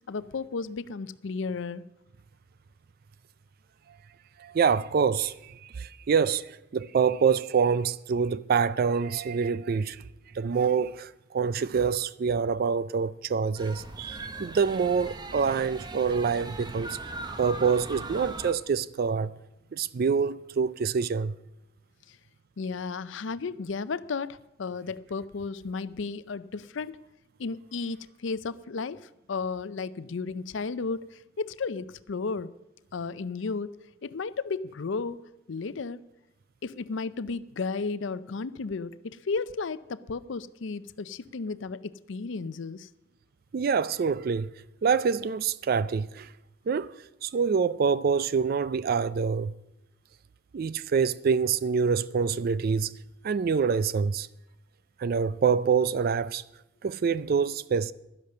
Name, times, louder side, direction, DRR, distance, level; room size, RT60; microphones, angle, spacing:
voice 1, 0.1-1.8 22.1-22.2 22.6-27.0 27.4-32.5 32.9-33.7 34.0-35.2 35.5-36.0 36.6-42.9, left 4 dB, 65° left, 0.5 m, -34 dB
voice 2, 4.4-10.0 10.3-17.0 17.4-19.3 19.7-21.3 43.5-44.5 44.8-46.3 46.7-46.9 47.2-49.5 50.5-52.9 53.2-54.3 55.0-56.4 56.8-57.9, right 6 dB, 50° right, 0.4 m, -26 dB
sound 1, 13.6-18.5, right 2 dB, 20° right, 0.9 m, -40 dB
12.0 x 10.5 x 6.6 m
head